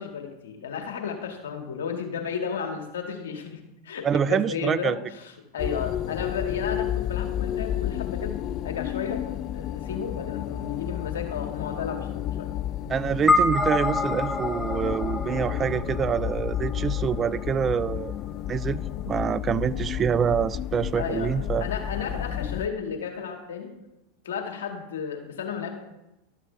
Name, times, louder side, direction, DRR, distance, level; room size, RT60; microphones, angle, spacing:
voice 1, 0.0-8.4 8.6-12.5 21.0-21.3 21.6-23.7 24.2-25.7, left 6 dB, 75° left, 1.8 m, -33 dB
voice 2, 4.0-5.0 12.9-18.1 18.5-21.7, right 7 dB, 30° right, 0.3 m, -26 dB
sound 1, 5.6-22.7, left 11 dB, 45° left, 0.5 m, -31 dB
sound 2, 13.3-17.8, left 2 dB, 5° left, 0.7 m, -27 dB
12.5 x 7.4 x 3.4 m
hypercardioid pair, 90°, 0 cm